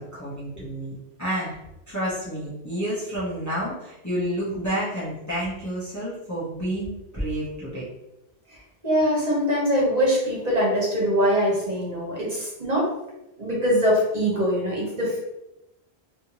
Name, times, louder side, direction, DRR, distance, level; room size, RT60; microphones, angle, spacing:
voice 1, 0.0-1.5 1.9-7.8, equal, 15° left, -10 dB, 1.0 m, -30 dB
voice 2, 8.8-12.9 13.4-15.2, equal, 40° right, -5 dB, 1.3 m, -23 dB
3.3 x 2.8 x 3.0 m, 0.92 s
omnidirectional pair, 1.1 m